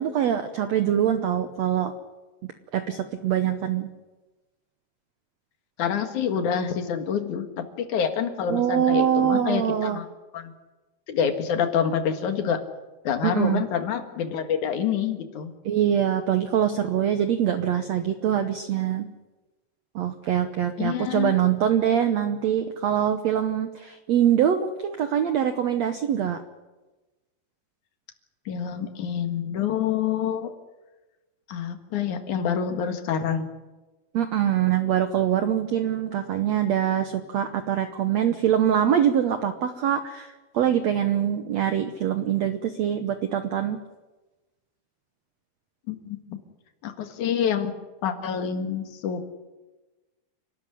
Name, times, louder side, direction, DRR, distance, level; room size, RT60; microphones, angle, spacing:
voice 1, 0.0-1.9 2.7-3.9 8.5-10.0 13.2-13.6 15.6-19.1 19.9-26.4 34.1-43.8, right 9 dB, 85° right, 8 dB, 1.5 m, -24 dB
voice 2, 5.8-10.1 10.3-10.5 11.1-12.6 13.0-15.5 20.8-21.3 28.5-30.5 31.5-33.5 45.9-46.4 46.8-47.7 48.0-49.2, left 8 dB, 55° left, 7 dB, 2.8 m, -27 dB
28.0 x 12.5 x 9.9 m, 1.2 s
omnidirectional pair, 4.6 m